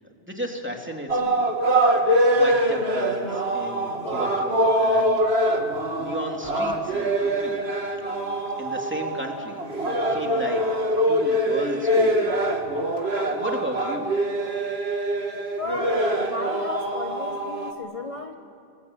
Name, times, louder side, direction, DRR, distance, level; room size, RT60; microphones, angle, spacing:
voice 1, 0.2-1.5 2.0-5.3 6.0-7.6 8.0-9.6 10.1-10.6 11.1-12.3 13.2-14.1, equal, 10° right, 1 dB, 3.2 m, -34 dB
sound 1, 1.1-17.7, right 1 dB, 80° right, 2.6 m, -24 dB
voice 2, 15.6-18.3, left 2 dB, 35° left, 4 dB, 1.3 m, -35 dB
29.0 x 21.5 x 9.1 m, 2.5 s
omnidirectional pair, 1.0 m